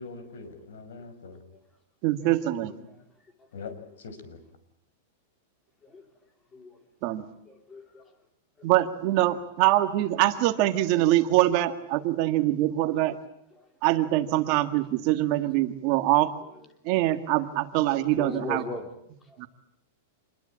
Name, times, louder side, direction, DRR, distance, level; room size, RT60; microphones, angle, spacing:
voice 1, 0.0-1.4 3.5-4.4, left 4 dB, 80° left, 12 dB, 6.0 m, -42 dB
voice 2, 2.0-2.7 7.0-7.2 8.6-13.2 13.8-16.3 16.9-18.6 19.4-19.5, right 15 dB, 35° right, 9 dB, 1.7 m, -24 dB
voice 3, 2.6-3.0 3.6-3.7 5.8-6.0 6.5-6.8 7.4-8.0 8.6-8.8 11.3-11.6 11.9-12.4 12.9-13.2 13.5-13.7 15.4-15.5 16.5-16.7 18.1-19.0 19.2-19.4, left 3 dB, 10° left, 5 dB, 3.1 m, -41 dB
27.5 x 21.0 x 8.7 m, 0.76 s
supercardioid pair, 170°, 0 cm